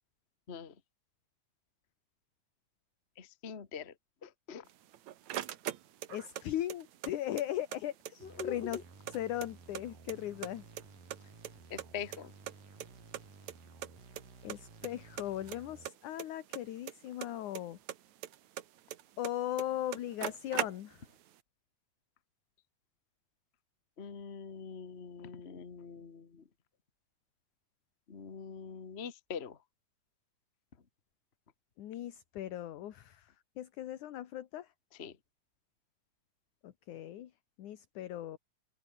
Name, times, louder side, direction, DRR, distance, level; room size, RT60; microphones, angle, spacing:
voice 1, 3.2-3.9 4.2-4.6 8.2-8.8 11.7-12.3 24.0-26.4 28.1-29.6 35.0-35.1, left 6 dB, 30° left, 1.2 m, -43 dB
sound 1, 4.7-6.4 6.7-7.8 8.1-8.2 8.4-9.8 10.1-10.8 11.1-12.5 12.8-12.9 13.1-13.2 13.5-13.6 13.8-14.2 14.5-14.9 15.2-17.6 17.9-19.3 19.6-19.7 19.9-21.1, right 12 dB, 65° right, 2.3 m, -40 dB
voice 2, 6.1-8.8 9.1-10.6 14.4-17.8 19.2-21.0 31.8-34.7 36.6-37.3 37.6-38.4, left 12 dB, 70° left, 2.8 m, -38 dB
sound 2, 8.2-15.9, right 4 dB, 90° right, 8.9 m, -55 dB
open air
omnidirectional pair, 3.8 m